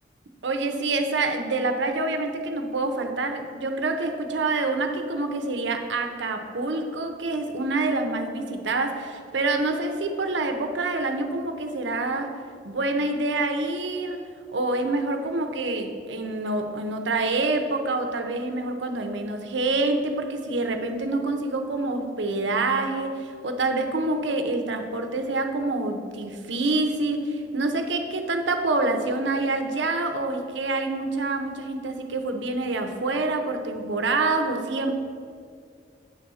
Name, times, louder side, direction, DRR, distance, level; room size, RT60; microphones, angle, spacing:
voice 1, 0.4-12.4 12.6-14.2 14.5-35.0, right 2 dB, 75° right, 6 dB, 0.8 m, -26 dB
8.8 x 4.1 x 6.3 m, 2.2 s
head